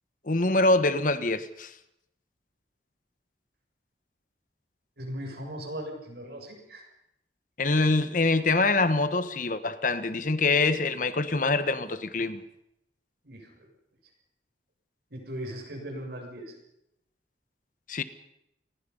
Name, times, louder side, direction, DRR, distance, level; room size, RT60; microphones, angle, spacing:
voice 1, 0.3-1.7 7.6-12.4 17.9-18.0, left 3 dB, 45° left, 1.2 m, -25 dB
voice 2, 5.0-6.8 13.2-13.7 15.1-16.5, equal, 65° right, 7.1 m, -38 dB
28.5 x 20.0 x 5.5 m
head